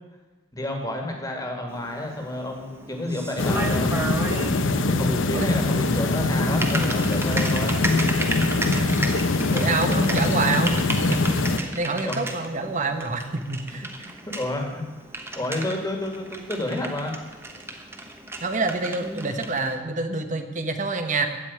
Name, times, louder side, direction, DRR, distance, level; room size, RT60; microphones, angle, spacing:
voice 1, 0.5-4.3 4.9-7.7 8.6-8.8 9.5-9.6 12.0-12.2 14.3-14.8 15.3-17.1, left 1 dB, 15° left, 2 dB, 2.0 m, -30 dB
Typing, 1.7-19.8, right 2 dB, 10° right, 1.0 m, -34 dB
sound 1, 3.4-11.6, left 2 dB, 60° left, 0.8 m, -23 dB
voice 2, 9.5-14.1 18.4-21.3, right 3 dB, 35° right, 7 dB, 1.1 m, -27 dB
15.5 x 5.4 x 9.5 m, 1.2 s
head